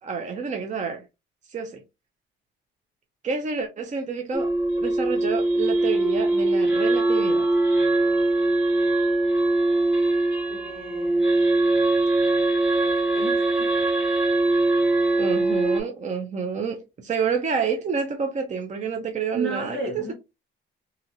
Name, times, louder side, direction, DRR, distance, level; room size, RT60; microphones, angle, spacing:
voice 1, 0.0-1.1 1.5-1.8 3.2-4.5 4.8-7.5 15.2-20.1, right 5 dB, 35° right, 0.6 m, -29 dB
sound 1, 4.3-15.8, right 2 dB, 5° right, 1.0 m, -22 dB
voice 2, 10.5-11.4 13.1-13.7 19.3-20.1, right 3 dB, 80° right, 1.7 m, -33 dB
2.8 x 2.8 x 2.6 m
cardioid pair, 90°, 20 cm